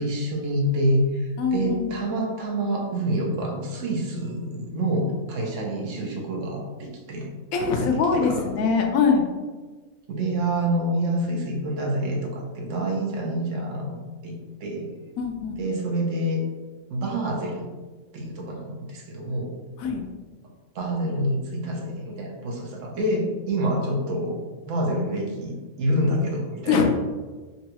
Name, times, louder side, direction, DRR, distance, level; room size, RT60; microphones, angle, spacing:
voice 1, 0.0-7.3 7.8-8.5 10.1-14.0 14.2-14.9 15.6-16.4 16.9-17.7 18.1-19.5 20.7-24.4 24.6-26.8, right 1 dB, 70° right, 0 dB, 1.0 m, -27 dB
voice 2, 1.4-2.0 7.5-9.3 15.2-15.6 19.8-20.0 26.7-26.8, left 5 dB, 85° left, 2 dB, 1.0 m, -22 dB
3.9 x 2.3 x 2.8 m, 1.3 s
omnidirectional pair, 1.4 m